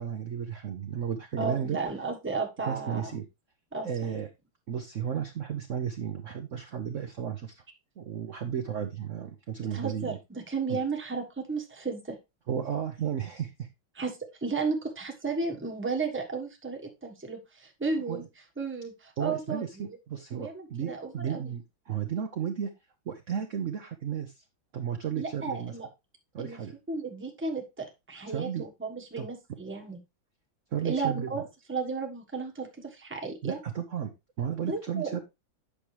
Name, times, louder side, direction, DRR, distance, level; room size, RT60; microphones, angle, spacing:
voice 1, 0.0-1.8 2.7-3.3 3.8-4.3 4.7-7.5 8.0-10.2 10.7-10.8 12.5-13.7 18.1-18.2 19.2-22.7 23.1-24.3 24.7-25.7 26.3-26.7 28.3-28.6 29.2-29.3 30.7-31.3 33.4-34.1 34.4-35.2, right 8 dB, 55° right, 5 dB, 0.9 m, -33 dB
voice 2, 1.4-3.2 3.7-4.2 9.6-12.2 13.9-18.2 18.6-20.0 20.3-21.5 25.2-25.9 26.4-26.6 26.9-30.0 30.8-31.4 31.7-33.6 34.7-35.2, right 4 dB, 5° right, 3 dB, 1.1 m, -34 dB
8.6 x 6.0 x 3.2 m, 0.22 s
omnidirectional pair, 2.2 m